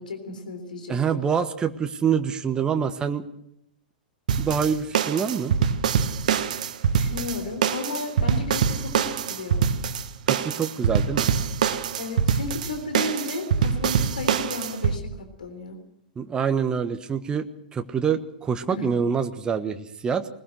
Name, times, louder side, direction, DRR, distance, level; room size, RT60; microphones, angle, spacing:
voice 1, 0.0-1.3 6.9-9.6 12.0-15.8 18.7-18.9, left 2 dB, 70° left, 7 dB, 3.6 m, -34 dB
voice 2, 0.9-3.2 4.4-5.5 10.3-11.3 16.2-17.4 17.7-20.3, right 7 dB, 15° right, 8 dB, 1.2 m, -26 dB
sound 1, 4.3-15.0, right 7 dB, 60° right, 1.4 m, -24 dB
21.5 x 20.5 x 6.3 m, 0.75 s
figure-of-eight pair, 100°, 5 cm